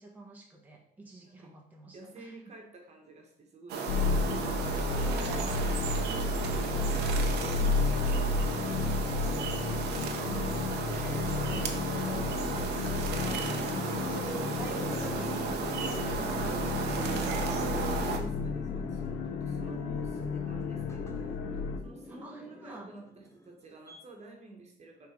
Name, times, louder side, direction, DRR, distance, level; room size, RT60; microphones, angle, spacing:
voice 1, 0.0-2.3 4.9-10.7 11.0-12.3 13.0-17.6 22.1-22.9, right 1 dB, 10° right, -2 dB, 1.4 m, -49 dB
voice 2, 1.9-4.3 18.0-25.1, right 3 dB, 40° right, 1 dB, 1.5 m, -50 dB
sound 1, 3.7-18.2, right 5 dB, 75° right, 0.9 m, -34 dB
sound 2, 3.9-21.8, left 3 dB, 75° left, 0.8 m, -32 dB
sound 3, 11.1-24.0, left 2 dB, 15° left, 0.9 m, -48 dB
6.4 x 3.9 x 5.2 m, 0.72 s
cardioid pair, 110°, 17 cm